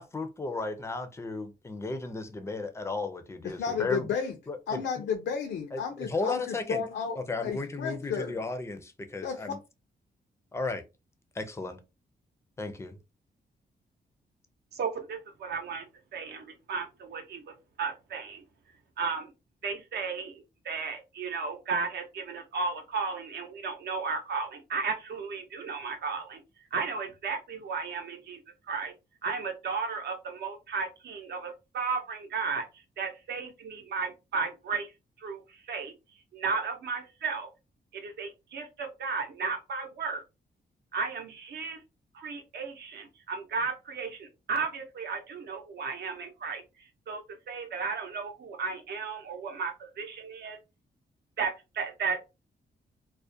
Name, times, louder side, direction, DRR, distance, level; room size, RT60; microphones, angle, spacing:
voice 1, 0.0-4.1 4.5-5.0 5.7-6.8 7.2-9.6 10.5-10.8 11.4-11.8 12.6-13.0, left 3 dB, 15° left, 0.4 m, -34 dB
voice 2, 3.4-4.4 4.7-8.4 9.2-9.5, left 6 dB, 85° left, 0.4 m, -33 dB
voice 3, 14.7-18.4 19.0-19.3 19.6-26.4 26.7-28.9 29.2-32.7 33.0-34.9 35.2-35.9 36.3-37.5 37.9-40.2 40.9-41.8 42.1-46.6 47.1-47.2 47.5-50.6 51.4-52.3, right 5 dB, 70° right, 0.7 m, -34 dB
2.3 x 2.1 x 2.6 m
wide cardioid pair, 140°, 17 cm